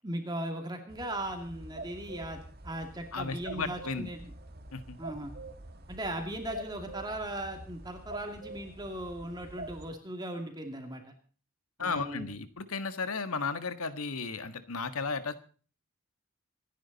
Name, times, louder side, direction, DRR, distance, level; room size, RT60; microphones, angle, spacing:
voice 1, 0.0-4.3 5.0-5.3 5.9-11.0 11.8-12.3, right 1 dB, 20° right, 4 dB, 2.5 m, -38 dB
sound 1, 0.9-9.9, right 2 dB, 45° right, 1.6 m, -46 dB
voice 2, 3.1-4.1 4.7-5.0 11.8-15.3, left 4 dB, 80° left, 11 dB, 1.5 m, -34 dB
26.5 x 10.0 x 4.1 m, 0.41 s
head